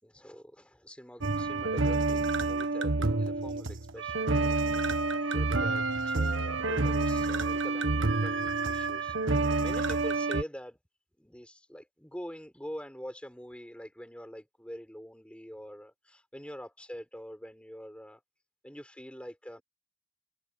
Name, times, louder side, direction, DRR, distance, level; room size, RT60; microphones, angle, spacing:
voice 1, 0.0-4.3 4.6-4.8 5.2-9.2 9.6-10.8 11.2-18.2 18.6-19.6, equal, 5° left, 5.3 m, -45 dB
sound 1, 1.2-10.4, right 3 dB, 70° right, 1.5 m, -28 dB
open air
head